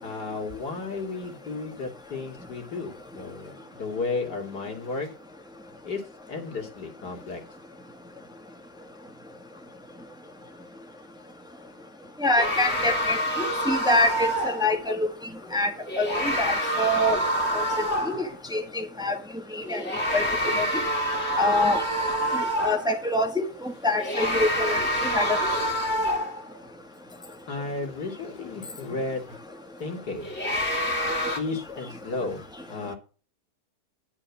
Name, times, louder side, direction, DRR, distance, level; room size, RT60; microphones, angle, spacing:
voice 1, 0.0-5.1 5.8-6.0 6.3-7.4 27.5-29.4 29.8-30.3 31.4-32.9, left 3 dB, 85° left, 3.1 m, -33 dB
voice 2, 12.2-13.2 13.6-15.1 15.5-15.7 16.0-17.2 17.5-17.6 18.1-18.2 18.5-19.1 19.5-19.8 20.1-20.2 20.6-20.7 21.4-21.8 22.6-24.8 25.1-25.5, left 1 dB, 5° right, 1.4 m, -25 dB
sound 1, 12.4-14.7 15.9-18.3 19.6-23.0 23.9-26.6 30.1-31.4, equal, 40° left, 2.7 m, -27 dB
11.0 x 4.8 x 7.2 m
omnidirectional pair, 1.7 m